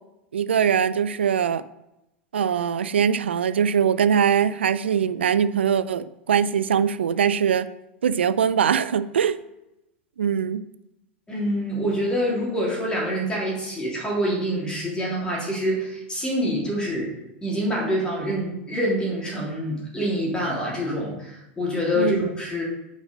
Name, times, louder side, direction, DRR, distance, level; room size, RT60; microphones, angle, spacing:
voice 1, 0.3-1.6 2.3-7.7 8.0-9.4 10.2-10.6 21.9-22.3, right 8 dB, 90° right, 15 dB, 0.4 m, -22 dB
voice 2, 11.3-17.1 17.4-22.6, equal, 15° left, -4 dB, 3.0 m, -26 dB
6.3 x 5.2 x 5.2 m, 0.91 s
hypercardioid pair, 100°, 6 cm